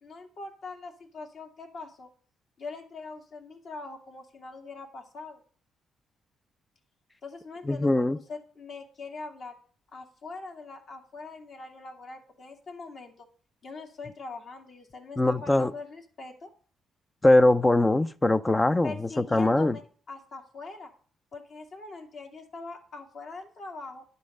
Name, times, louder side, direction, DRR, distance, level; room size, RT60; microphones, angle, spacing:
voice 1, 0.0-2.1 2.6-5.4 7.2-9.6 9.9-13.3 13.6-16.5 18.8-19.8 20.1-20.9 21.3-24.0, left 3 dB, 60° left, 2.3 m, -42 dB
voice 2, 7.7-8.2 15.2-15.7 17.2-19.8, left 2 dB, 20° left, 0.5 m, -22 dB
10.5 x 5.4 x 6.5 m
cardioid pair, 90°, 0 cm